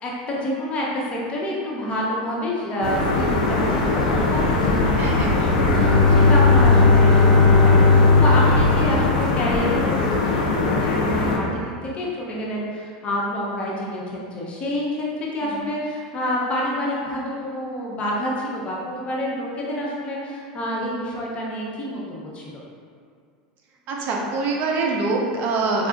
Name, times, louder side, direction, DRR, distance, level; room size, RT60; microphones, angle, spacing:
voice 1, 0.0-5.0 5.4-15.1 15.3-22.6, equal, 30° left, -4 dB, 0.8 m, -28 dB
sound 1, 2.8-11.4, left 2 dB, 90° left, 0.5 m, -21 dB
voice 2, 5.0-5.5 8.9-9.1 15.4-15.6 23.9-25.9, right 3 dB, 50° right, -1 dB, 0.5 m, -25 dB
Bowed string instrument, 5.5-10.0, left 3 dB, 5° right, 0.8 m, -17 dB
4.6 x 2.3 x 2.5 m, 2.2 s
supercardioid pair, 105°, 4 cm